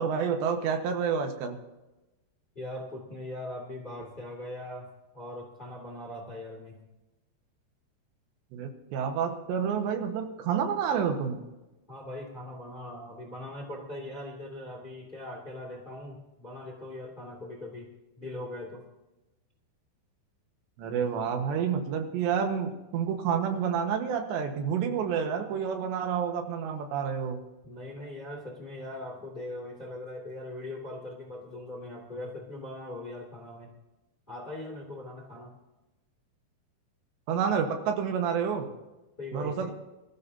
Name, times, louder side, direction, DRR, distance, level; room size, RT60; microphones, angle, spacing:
voice 1, 0.0-1.6 8.5-11.4 20.8-27.4 37.3-38.7 39.3-39.7, right 7 dB, 90° right, 5 dB, 3.6 m, -29 dB
voice 2, 2.5-4.9 5.1-6.8 11.9-18.9 27.6-33.7 34.3-35.5 39.2-39.7, left 1 dB, 20° left, -1 dB, 1.5 m, -40 dB
24.0 x 13.5 x 2.8 m, 1.0 s
omnidirectional pair, 4.9 m